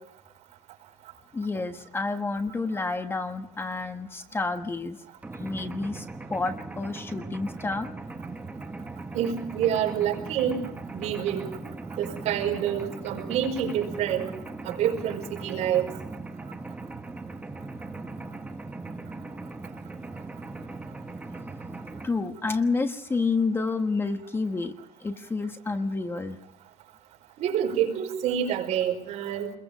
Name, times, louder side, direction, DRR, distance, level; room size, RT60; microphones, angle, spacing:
voice 1, 1.3-5.0 5.4-7.9 22.0-24.7 25.0-26.4, left 3 dB, 20° left, 7 dB, 1.3 m, -29 dB
Mechanisms, 5.2-22.1, right 3 dB, 10° right, 1.5 m, -39 dB
voice 2, 9.1-10.7 10.9-11.5 12.0-14.3 14.6-15.9 27.4-29.5, right 9 dB, 70° right, 2 dB, 5.2 m, -27 dB
28.5 x 22.0 x 5.1 m, 0.79 s
cardioid pair, 130°, 12 cm